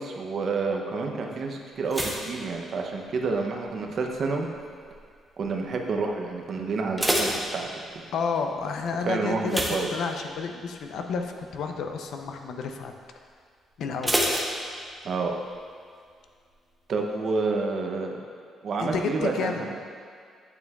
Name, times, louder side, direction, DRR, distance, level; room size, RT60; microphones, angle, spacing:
voice 1, 0.0-4.5 5.4-7.7 9.1-9.9 15.0-15.3 16.9-18.2 18.6-19.8, right 4 dB, 40° right, 2 dB, 0.6 m, -29 dB
sound 1, 1.9-3.4 3.6-4.1 4.7-5.1 5.4-5.5 5.9-6.0 6.6-8.2 9.4-10.6 11.0-11.2 11.6-11.7 14.0-15.2 15.5-15.6, equal, 5° right, 0.6 m, -28 dB
voice 2, 8.1-9.6 9.9-12.9 13.8-14.2 18.8-19.7, left 5 dB, 60° left, 5 dB, 0.5 m, -30 dB
8.5 x 6.9 x 2.3 m, 2.1 s
cardioid pair, 170°, 0 cm